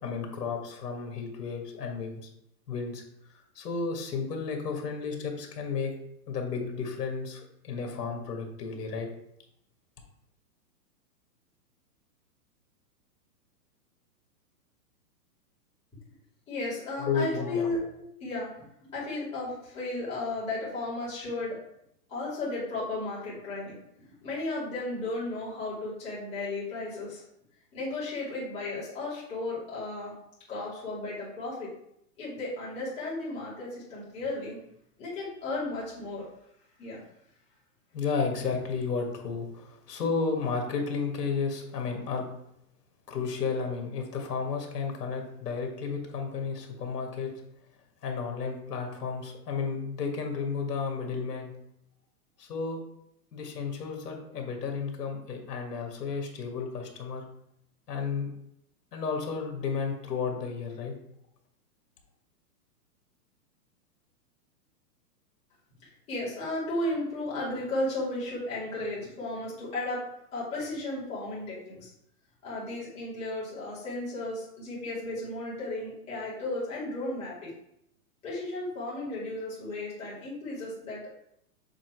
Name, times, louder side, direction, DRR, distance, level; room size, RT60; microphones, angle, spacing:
voice 1, 0.0-2.3 2.7-3.0 3.3-6.0 6.3-9.1 17.0-17.7 18.0-18.1 37.9-42.2 43.1-47.3 48.0-51.5 52.4-52.8 53.3-57.2 57.9-58.3 58.9-61.0, left 5 dB, 75° left, 2 dB, 1.9 m, -32 dB
voice 2, 16.5-17.8 18.2-21.6 22.1-27.2 27.7-30.1 30.5-31.7 32.2-34.6 35.0-36.2 36.8-37.0 65.8-70.0 70.3-71.9 72.4-77.5 78.2-81.0, left 2 dB, 15° left, -8 dB, 2.0 m, -34 dB
7.4 x 3.0 x 4.5 m, 0.77 s
hypercardioid pair, 165°, 48 cm